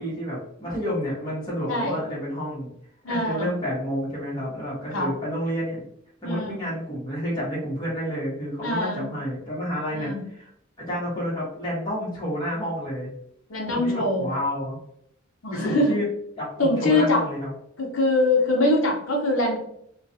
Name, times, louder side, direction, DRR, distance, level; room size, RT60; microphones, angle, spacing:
voice 1, 0.0-2.7 3.1-5.8 6.2-10.5 10.8-13.1 13.7-14.8 15.5-16.0 16.4-17.5, equal, 20° left, -8 dB, 1.0 m, -30 dB
voice 2, 1.7-2.0 3.0-3.5 4.9-5.1 6.2-6.6 8.6-9.1 9.9-10.2 13.5-14.3 15.4-15.9 16.6-17.2 17.8-19.6, left 2 dB, 75° left, 0 dB, 0.7 m, -23 dB
2.3 x 2.3 x 2.6 m, 0.71 s
head